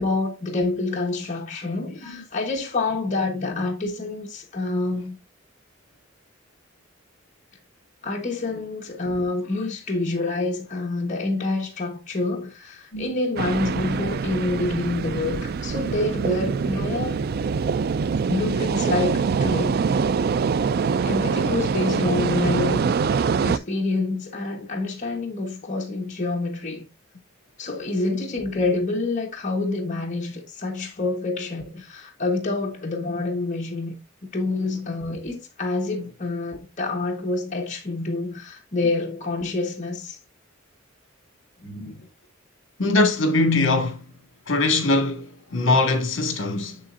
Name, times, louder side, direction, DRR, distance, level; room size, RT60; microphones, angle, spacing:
voice 1, 0.0-5.2 8.0-17.2 18.3-19.8 21.0-22.9 23.4-26.9 27.6-34.0 34.3-40.2 41.6-42.0, left 2 dB, 40° left, 1.2 m, -27 dB
sound 1, 13.4-23.6, right 5 dB, 50° right, 0.3 m, -24 dB
voice 2, 42.8-44.0 44.5-46.8, left 2 dB, 65° left, 1.8 m, -22 dB
7.4 x 7.4 x 2.5 m
head